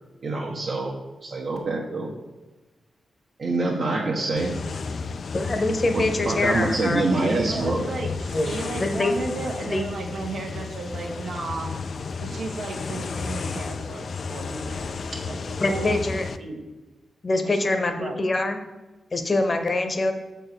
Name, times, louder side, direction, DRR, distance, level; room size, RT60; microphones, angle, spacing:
voice 1, 0.2-0.9 1.2-2.1 3.4-4.8 5.9-7.8, right 2 dB, 60° right, -2 dB, 1.0 m, -25 dB
sound 1, 4.4-16.4, left 4 dB, 55° left, 0.3 m, -33 dB
voice 2, 5.3-7.1 8.3-8.5 8.8-9.2 9.6-9.8 15.6-16.2 17.2-18.6 19.1-20.1, left 2 dB, 30° left, 7 dB, 0.9 m, -24 dB
voice 3, 7.4-11.7 12.2-16.0 16.4-16.6 17.4-18.2, right 3 dB, 75° right, 0 dB, 1.2 m, -34 dB
6.6 x 4.5 x 6.7 m, 1.1 s
wide cardioid pair, 130°, 0 cm